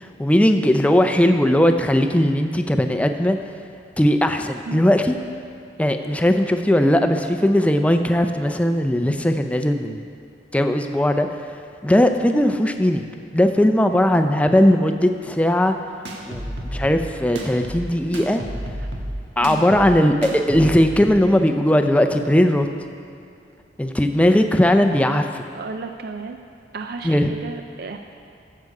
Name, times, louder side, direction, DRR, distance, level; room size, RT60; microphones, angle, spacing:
voice 1, 0.2-3.4 4.0-5.2 5.8-10.0 10.5-11.3 11.8-13.0 13.3-15.7 16.3-18.4 19.4-22.7 23.8-25.4 27.0-27.3, left 1 dB, 10° left, 6 dB, 0.5 m, -18 dB
sound 1, 16.0-21.1, equal, 90° right, 1.4 m, -31 dB
voice 2, 25.5-26.4 26.7-28.0, right 4 dB, 60° right, 5 dB, 0.4 m, -33 dB
14.5 x 6.7 x 4.8 m, 2.4 s
head